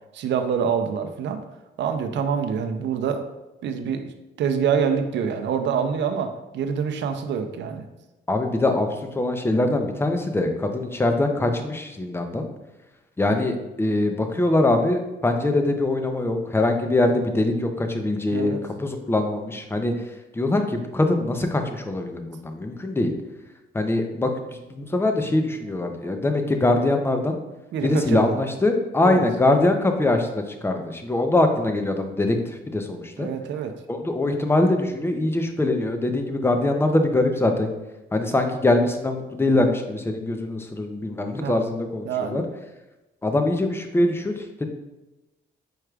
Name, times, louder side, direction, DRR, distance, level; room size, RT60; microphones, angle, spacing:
voice 1, 0.1-1.4 1.8-3.3 3.6-4.1 4.4-7.8 18.3-18.6 27.7-28.3 29.0-29.2 33.2-33.7 41.4-41.6 42.0-42.4, right 7 dB, 65° right, 7 dB, 0.5 m, -26 dB
voice 2, 8.3-8.9 9.1-12.5 13.2-18.5 18.8-19.9 20.3-23.1 23.7-27.4 27.8-33.3 33.9-37.7 38.1-42.4 43.2-44.3 44.6-44.7, left 2 dB, 10° left, 5 dB, 0.6 m, -23 dB
4.7 x 4.6 x 2.3 m, 1.0 s
cardioid pair, 90°, 20 cm